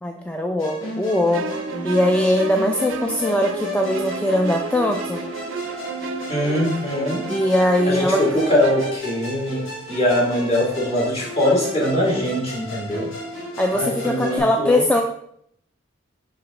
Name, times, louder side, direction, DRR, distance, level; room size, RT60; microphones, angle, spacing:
voice 1, 0.0-1.4 1.8-5.2 7.3-8.2 13.6-15.0, left 1 dB, 5° left, 2 dB, 0.4 m, -20 dB
Musical instrument, 0.6-14.4, left 1 dB, 90° left, 1.6 m, -33 dB
sound 1, 1.3-9.0, right 5 dB, 75° right, 0.5 m, -32 dB
voice 2, 6.3-7.2 7.9-13.1 13.7-14.9, left 1 dB, 35° left, -5 dB, 2.2 m, -22 dB
5.7 x 4.9 x 3.6 m, 0.69 s
head